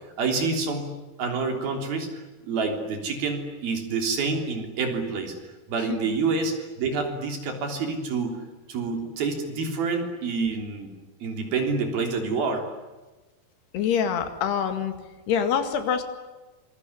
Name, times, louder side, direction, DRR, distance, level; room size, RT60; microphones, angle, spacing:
voice 1, 0.2-0.9 1.2-5.4 5.7-8.3 8.7-10.9 11.2-12.7, right 4 dB, 65° right, 4 dB, 5.2 m, -27 dB
voice 2, 13.7-14.9 15.3-16.0, left 7 dB, 75° left, 8 dB, 4.1 m, -25 dB
26.5 x 22.0 x 9.8 m, 1.2 s
omnidirectional pair, 4.8 m